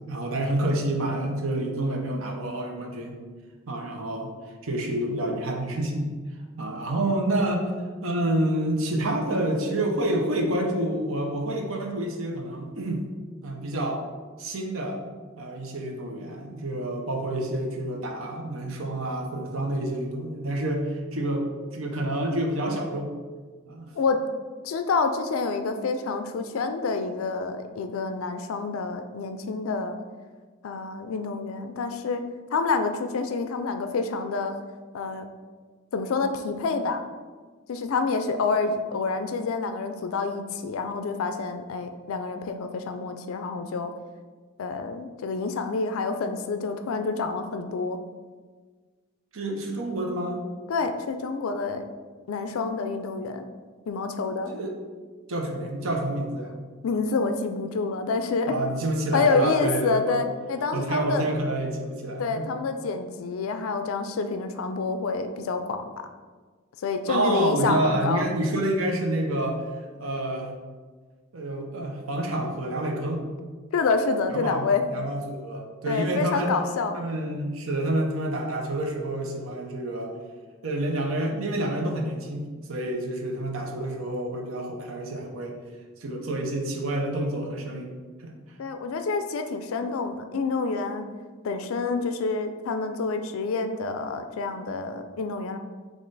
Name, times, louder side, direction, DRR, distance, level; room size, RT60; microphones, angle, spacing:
voice 1, 0.1-3.2 3.7-4.3 4.6-6.1 6.6-7.7 8.0-13.0 13.4-14.0 14.4-15.0 15.4-23.1 23.7-23.9 49.3-50.4 54.5-54.8 55.3-56.5 58.5-60.2 60.7-62.5 67.1-70.5 71.3-73.2 74.3-76.5 76.9-80.1 80.6-85.6 86.0-88.3, right 1 dB, 80° right, 2 dB, 0.7 m, -28 dB
voice 2, 24.6-30.0 30.6-32.2 32.5-34.5 34.9-35.2 35.9-37.0 37.7-43.9 44.6-48.0 50.7-51.9 52.3-53.4 53.9-54.5 56.8-58.6 59.1-61.3 62.2-65.8 66.8-68.3 73.7-74.8 75.9-77.0 88.6-91.1 91.4-95.6, left 4 dB, 80° left, 8 dB, 0.4 m, -28 dB
5.3 x 2.5 x 3.9 m, 1.5 s
head